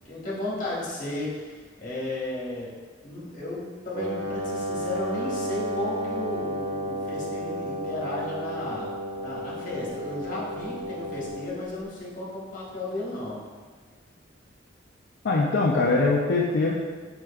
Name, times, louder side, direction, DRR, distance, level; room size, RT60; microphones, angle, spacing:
voice 1, 0.0-2.7 3.0-13.4, left 2 dB, 45° left, -6 dB, 1.2 m, -34 dB
Wind instrument woodwind instrument, 3.9-11.5, equal, 70° right, 1.3 m, -32 dB
voice 2, 15.2-16.7, left 3 dB, 60° left, -3 dB, 0.4 m, -22 dB
4.9 x 4.3 x 2.3 m, 1.5 s
head